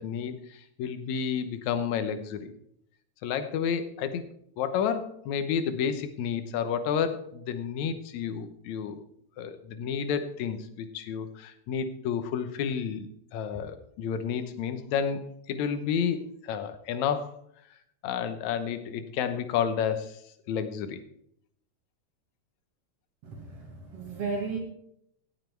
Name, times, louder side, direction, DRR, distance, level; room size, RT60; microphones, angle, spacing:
voice 1, 0.0-2.5 3.2-4.2 4.6-9.0 9.4-13.1 13.3-17.3 18.0-20.2 20.5-21.0, left 7 dB, 75° left, 10 dB, 2.3 m, -30 dB
voice 2, 23.2-24.6, right 4 dB, 60° right, 1 dB, 2.4 m, -34 dB
17.0 x 7.5 x 4.5 m, 0.71 s
omnidirectional pair, 3.3 m